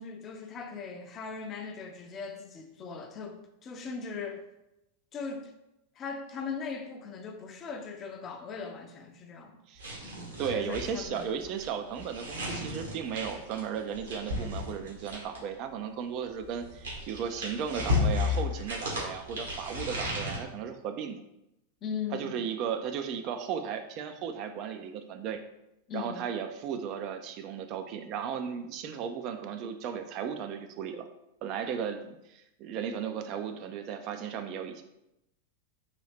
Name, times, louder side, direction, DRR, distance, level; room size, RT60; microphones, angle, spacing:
voice 1, 0.0-4.4 5.1-5.5 6.0-9.6 10.4-11.5 21.8-22.4 25.9-26.2, left 5 dB, 30° left, 5 dB, 0.5 m, -39 dB
sound 1, 9.8-15.5 16.4-20.4, left 3 dB, 70° right, 1.3 m, -34 dB
voice 2, 10.4-21.2 22.1-25.4 25.9-31.1 31.4-34.8, right 7 dB, 40° right, 7 dB, 0.3 m, -35 dB
4.0 x 2.7 x 3.3 m, 0.88 s
figure-of-eight pair, 90°, 0 cm